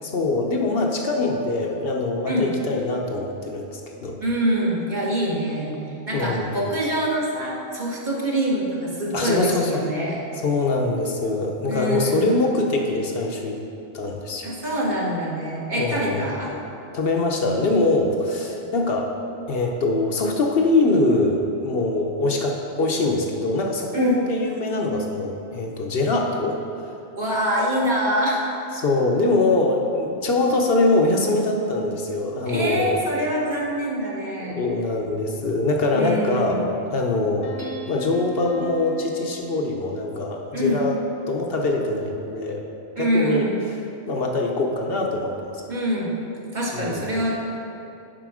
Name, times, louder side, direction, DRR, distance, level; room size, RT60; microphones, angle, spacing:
voice 1, 0.0-4.2 6.1-6.6 9.1-9.8 10.4-13.6 13.9-14.5 15.8-16.3 16.9-19.1 19.5-26.6 28.7-33.0 34.4-37.5 37.9-41.0 41.3-42.7 43.0-43.5 44.1-45.5 46.7-47.1, left 2 dB, 65° left, 1 dB, 0.9 m, -23 dB
voice 2, 4.2-5.7 6.0-10.2 11.7-12.3 14.4-16.5 23.9-24.2 27.2-28.4 32.4-34.7 35.9-36.6 40.5-40.9 43.0-43.6 45.7-46.1 46.5-47.3, equal, 45° right, -5 dB, 1.4 m, -25 dB
Piano, 37.4-40.3, right 1 dB, 35° left, 0.8 m, -38 dB
Hammer / Chink clink, 37.6-38.4, right 1 dB, 15° right, 1.2 m, -46 dB
7.6 x 5.3 x 4.8 m, 2.8 s
omnidirectional pair, 1.1 m